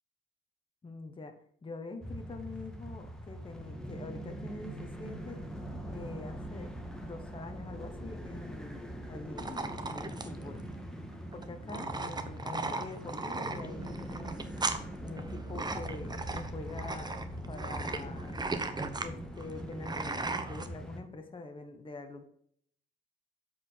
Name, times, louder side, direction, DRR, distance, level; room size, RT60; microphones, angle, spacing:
voice 1, 0.8-1.3 1.6-5.4 5.9-6.7 7.0-10.7 11.3-14.5 15.0-18.4 19.0-22.2, left 3 dB, 25° left, 5 dB, 1.2 m, -45 dB
sound 1, 2.0-21.0, right 1 dB, 5° left, 1.6 m, -42 dB
sound 2, 9.4-20.7, right 3 dB, 20° right, 0.9 m, -37 dB
7.6 x 4.8 x 5.7 m, 0.66 s
cardioid pair, 90°, 20 cm